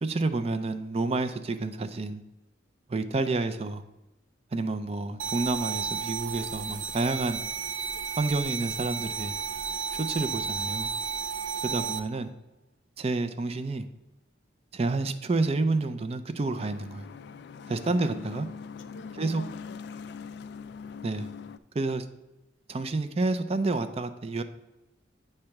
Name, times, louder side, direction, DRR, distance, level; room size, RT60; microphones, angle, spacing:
voice 1, 0.0-2.2 2.9-3.8 4.5-7.4 8.2-9.4 9.9-10.9 11.6-12.3 13.0-13.8 14.7-17.1 17.7-18.5 19.2-19.4 21.0-21.3 21.7-22.0 22.7-24.4, right 3 dB, 30° right, 0.4 m, -29 dB
sound 1, 5.2-12.0, right 6 dB, 85° right, 0.6 m, -33 dB
voice 2, 11.6-12.0 17.9-18.2 18.9-19.9 20.1-20.7, left 3 dB, 75° left, 0.7 m, -49 dB
sound 2, 16.5-21.6, left 6 dB, 55° left, 0.3 m, -42 dB
8.7 x 3.3 x 5.8 m
head